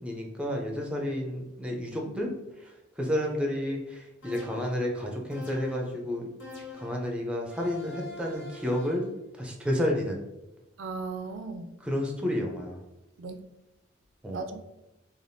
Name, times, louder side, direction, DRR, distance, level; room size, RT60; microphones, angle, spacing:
voice 1, 0.0-2.3 2.6-2.7 3.0-6.3 6.7-9.1 9.4-10.2 11.8-12.8 14.2-14.5, left 1 dB, 5° right, 0 dB, 0.4 m, -31 dB
voice 2, 2.0-2.3 10.8-11.7 13.2-13.4 14.3-14.6, right 4 dB, 85° right, 7 dB, 0.3 m, -37 dB
sound 1, 4.2-4.9 5.3-5.9 6.4-7.0 7.5-9.1, left 3 dB, 85° left, 1.1 m, -43 dB
3.3 x 2.4 x 2.6 m, 0.94 s
head